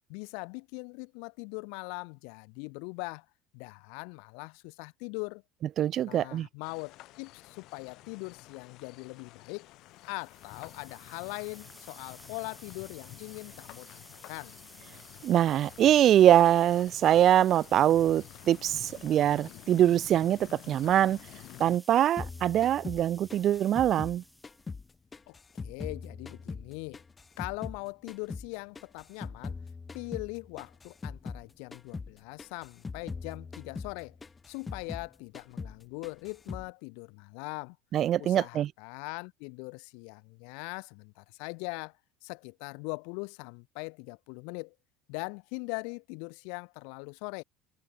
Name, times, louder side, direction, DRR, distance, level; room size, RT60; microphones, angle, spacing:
voice 1, 0.1-3.3 3.5-5.4 6.0-9.7 10.0-14.5 25.3-27.0 27.4-29.6 29.9-34.2 34.5-37.8 38.2-42.0 42.2-44.7 45.1-47.4, left 40 dB or more, 75° left, 0.5 m, -41 dB
voice 2, 5.8-6.5 15.2-21.2 21.6-24.2 37.9-38.7, right 11 dB, 40° right, 0.4 m, -23 dB
sound 1, 6.6-21.8, left 17 dB, 55° left, 2.7 m, -51 dB
sound 2, 10.0-24.9, equal, ahead, 1.1 m, -54 dB
sound 3, 22.2-24.9 25.1-27.8 28.1-31.5 31.7-32.1 32.4-35.1 35.3-35.8 36.0-36.7, left 4 dB, 15° left, 0.6 m, -41 dB
cardioid pair, 160°, 0 cm